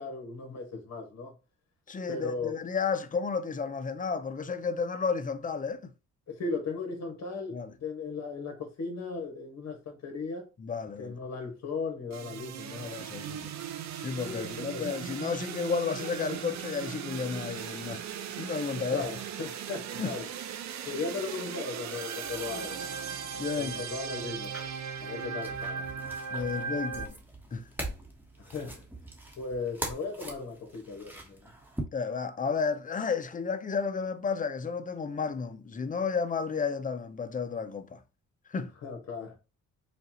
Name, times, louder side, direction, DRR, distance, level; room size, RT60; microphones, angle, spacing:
voice 1, 0.0-1.4 2.1-2.5 6.3-10.5 11.0-13.0 14.3-14.9 18.9-20.3 20.9-22.8 23.6-24.6 25.0-25.9 28.4-28.9 29.4-31.5 38.8-39.4, left 4 dB, 60° left, 1.6 m, -37 dB
voice 2, 1.9-5.9 7.5-7.7 10.6-11.2 12.8-13.6 13.9-18.1 18.4-19.1 20.0-20.2 23.4-23.8 26.3-27.1 27.5-27.7 31.9-38.0 38.5-38.7, left 5 dB, 25° left, 0.5 m, -32 dB
sound 1, 12.1-27.1, right 7 dB, 65° right, 0.6 m, -38 dB
sound 2, 22.2-31.8, right 1 dB, 5° right, 1.2 m, -43 dB
5.1 x 2.4 x 3.0 m
cardioid pair, 90°, 30 cm